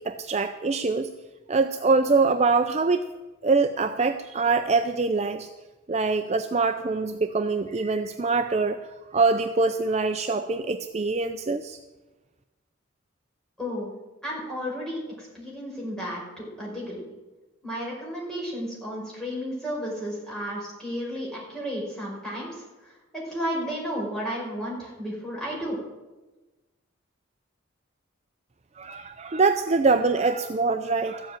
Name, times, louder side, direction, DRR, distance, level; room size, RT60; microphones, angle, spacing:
voice 1, 0.0-1.1 1.5-3.1 3.4-5.5 5.9-8.8 9.1-11.8 28.8-31.4, right 4 dB, 30° right, 7 dB, 0.5 m, -24 dB
voice 2, 13.6-13.9 14.2-17.0 17.6-25.8, equal, 5° left, -4 dB, 5.0 m, -33 dB
14.0 x 7.7 x 8.9 m, 1.1 s
head